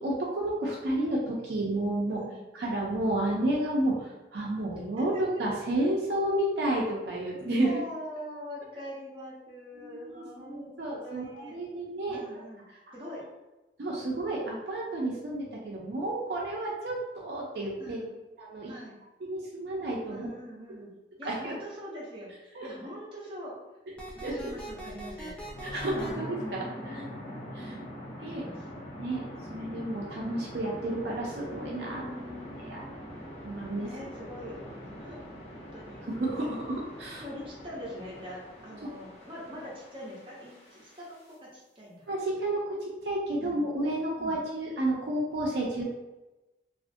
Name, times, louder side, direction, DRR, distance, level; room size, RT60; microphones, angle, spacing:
voice 1, 0.0-2.2 2.6-7.7 9.8-12.4 13.8-18.0 18.4-18.7 19.3-20.3 21.2-21.5 22.6-22.7 24.2-24.5 25.2-25.3 25.6-27.0 28.2-28.4 29.0-29.2 29.5-32.0 32.7-32.8 33.4-33.9 36.1-37.2 42.1-42.8 43.0-45.8, right 1 dB, 65° right, -3 dB, 0.4 m, -31 dB
voice 2, 4.9-5.4 7.6-10.7 11.0-11.6 12.1-12.6 12.9-13.2 17.8-18.1 18.7-19.0 20.1-20.9 21.2-23.5 24.1-25.3 26.0-27.8 28.3-28.7 31.9-32.7 33.8-35.4 35.7-36.1 36.7-42.1 42.3-42.4 43.4-43.6 44.2-44.3 45.7-45.8, equal, 30° right, -5 dB, 0.7 m, -43 dB
sound 1, 24.0-26.1, right 1 dB, 5° left, 0.3 m, -41 dB
sound 2, 25.4-41.3, equal, 40° left, 0.8 m, -43 dB
2.4 x 2.4 x 2.5 m, 1.1 s
head